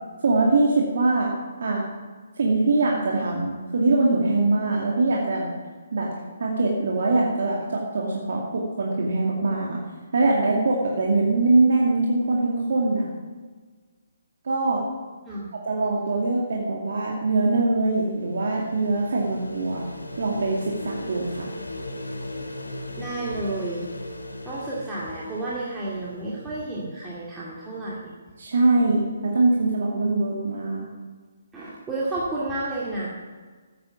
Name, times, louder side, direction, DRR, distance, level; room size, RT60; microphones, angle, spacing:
voice 1, 0.2-1.3 1.6-1.8 2.4-5.5 5.9-6.1 6.4-9.8 10.1-13.1 14.4-14.9 15.6-19.9 20.2-21.5 28.4-30.9, right 2 dB, 55° right, -2 dB, 2.3 m, -22 dB
sound 1, 17.8-26.6, left 1 dB, 80° left, 1.6 m, -38 dB
voice 2, 23.0-23.8 24.4-28.1 31.5-33.1, right 2 dB, 10° right, -8 dB, 2.4 m, -31 dB
13.5 x 9.2 x 7.2 m, 1.5 s
figure-of-eight pair, 135°, 0 cm